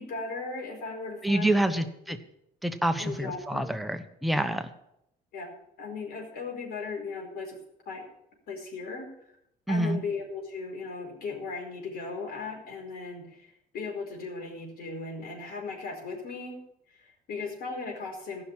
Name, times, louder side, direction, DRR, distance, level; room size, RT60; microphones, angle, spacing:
voice 1, 0.0-1.8 3.0-3.7 5.3-7.6 7.8-8.1 8.5-9.1 9.7-16.6 16.9-18.4, left 4 dB, 65° left, 1 dB, 4.7 m, -37 dB
voice 2, 1.2-2.2 2.6-4.7 9.7-10.0, right 1 dB, ahead, 10 dB, 1.1 m, -27 dB
15.5 x 6.0 x 8.8 m, 0.78 s
cardioid pair, 110°, 17 cm